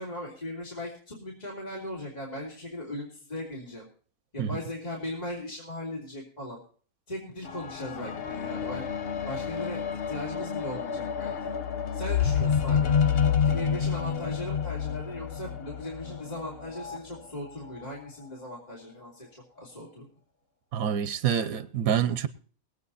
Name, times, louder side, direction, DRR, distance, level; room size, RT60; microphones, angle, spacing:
voice 1, 0.0-3.9 4.3-6.6 7.1-8.9 9.2-9.8 10.1-11.5 11.9-12.9 13.4-20.1, left 1 dB, 30° left, 3.2 m, -38 dB
sound 1, 7.5-17.0 17.8-17.9, left 7 dB, 50° left, 1.0 m, -29 dB
voice 2, 20.7-22.3, right 8 dB, 80° right, 1.2 m, -27 dB
21.0 x 8.6 x 4.2 m
omnidirectional pair, 1.5 m